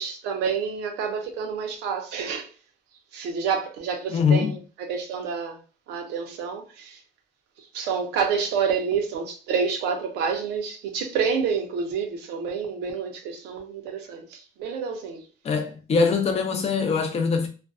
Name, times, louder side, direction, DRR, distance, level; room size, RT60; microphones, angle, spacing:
voice 1, 0.0-2.5 3.1-5.6 5.9-7.0 7.7-15.3, right 6 dB, 85° right, 0.7 m, -28 dB
voice 2, 4.1-4.5 15.4-17.5, left 5 dB, 40° left, 0.6 m, -22 dB
2.5 x 2.2 x 2.4 m
cardioid pair, 110°, 17 cm